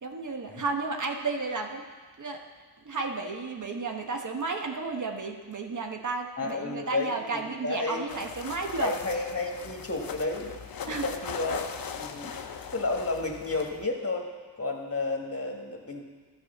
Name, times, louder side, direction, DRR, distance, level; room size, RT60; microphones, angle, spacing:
voice 1, 0.0-1.9 2.2-2.4 2.8-8.9 10.8-11.1, right 3 dB, 45° right, 3 dB, 1.2 m, -33 dB
voice 2, 6.4-8.0 8.8-10.5 10.9-12.4 12.7-14.3 14.6-16.0, left 3 dB, 35° left, 1 dB, 2.0 m, -32 dB
sound 1, 8.1-13.8, left 6 dB, 55° left, 0.8 m, -39 dB
12.5 x 4.8 x 7.1 m, 1.4 s
cardioid pair, 65°, 42 cm